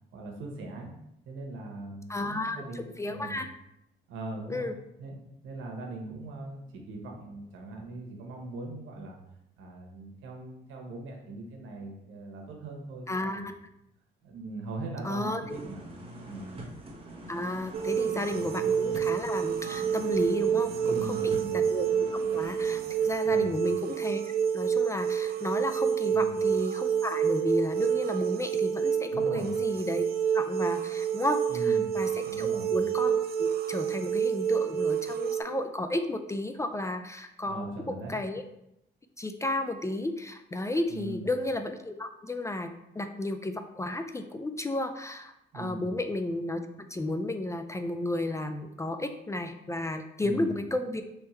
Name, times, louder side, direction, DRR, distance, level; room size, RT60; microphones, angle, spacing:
voice 1, 0.1-0.9 1.3-3.4 4.1-4.7 5.0-9.2 9.6-13.4 14.2-15.8 16.2-16.4 18.3-18.4 20.9-21.6 23.2-23.6 26.1-26.3 29.1-29.5 31.5-31.9 32.3-32.7 37.4-38.2 40.9-41.3 45.5-45.9 50.2-50.5, right 2 dB, 80° right, 1 dB, 1.1 m, -40 dB
voice 2, 2.1-3.5 4.5-4.7 13.1-13.5 15.0-15.6 17.3-21.9 22.3-24.2 24.5-30.0 30.3-37.7 38.1-38.4 39.2-51.0, left 1 dB, 15° left, 7 dB, 0.3 m, -33 dB
sound 1, 15.5-25.3 25.7-25.8, right 1 dB, 30° right, 1.1 m, -45 dB
sound 2, 17.7-35.4, right 8 dB, 50° right, 0.5 m, -28 dB
3.5 x 3.2 x 4.4 m, 0.81 s
cardioid pair, 90°, 20 cm